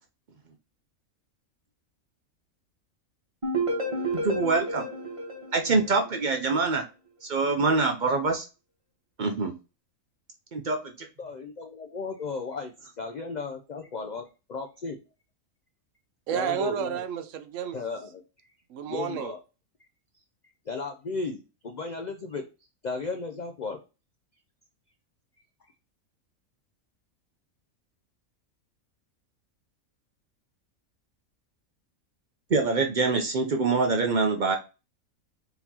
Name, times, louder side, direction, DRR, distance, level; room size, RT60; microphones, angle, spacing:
sound 1, 3.4-6.4, right 2 dB, 25° right, 1.1 m, -31 dB
voice 1, 4.1-4.9 5.5-6.8 7.3-8.5 9.2-9.5 10.5-10.8 32.5-34.6, right 3 dB, 55° right, 3 dB, 0.5 m, -24 dB
voice 2, 11.2-12.7 13.0-14.2 14.5-15.0 16.3-17.0 17.7-18.2 18.8-19.4 20.7-21.4 21.6-22.4 22.8-23.8, left 4 dB, 90° left, 5 dB, 0.4 m, -34 dB
voice 3, 16.3-17.8 18.7-19.3, right 9 dB, 70° right, 10 dB, 0.9 m, -31 dB
4.4 x 4.0 x 2.8 m, 0.30 s
omnidirectional pair, 1.5 m